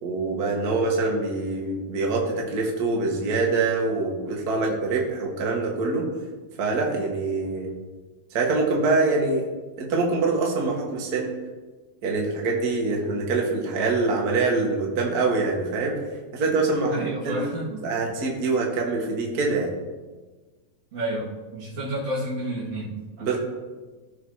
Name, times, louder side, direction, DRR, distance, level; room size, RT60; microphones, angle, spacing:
voice 1, 0.0-6.1 6.6-7.7 8.3-9.5 9.8-11.3 12.0-16.0 16.3-17.5 17.8-19.7 23.2-23.4, right 3 dB, 40° right, -1 dB, 1.4 m, -24 dB
voice 2, 16.8-17.9 20.9-23.4, right 1 dB, 70° right, -9 dB, 3.5 m, -31 dB
16.0 x 6.0 x 2.8 m, 1.3 s
omnidirectional pair, 3.7 m